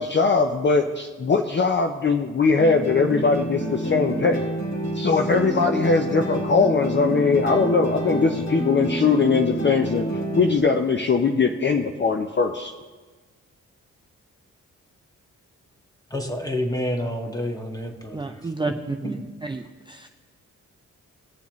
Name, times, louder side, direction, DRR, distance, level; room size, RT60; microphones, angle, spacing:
voice 1, 0.0-4.4 4.9-10.1 10.3-12.7, left 4 dB, 35° left, 4 dB, 0.6 m, -21 dB
sound 1, 2.6-10.6, right 1 dB, 55° left, 2.5 m, -28 dB
voice 2, 16.1-18.7 19.0-19.2, left 1 dB, 10° left, 3 dB, 1.6 m, -29 dB
voice 3, 18.1-19.1 19.5-19.6 19.9-20.1, right 3 dB, 15° right, 4 dB, 0.5 m, -30 dB
19.5 x 7.0 x 3.1 m, 1.4 s
cardioid pair, 55°, 32 cm